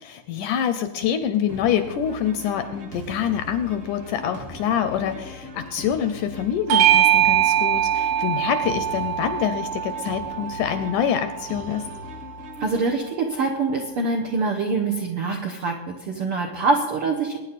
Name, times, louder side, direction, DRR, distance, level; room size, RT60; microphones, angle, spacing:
voice 1, 0.0-11.9, left 9 dB, 75° left, 10 dB, 1.9 m, -26 dB
sound 1, 1.5-12.9, left 1 dB, 45° right, 2.1 m, -40 dB
Bell / Doorbell, 6.7-11.5, right 11 dB, 85° right, 3.0 m, -22 dB
voice 2, 12.6-17.4, right 3 dB, 70° right, 2 dB, 1.3 m, -24 dB
22.0 x 9.8 x 4.2 m, 1.1 s
omnidirectional pair, 4.2 m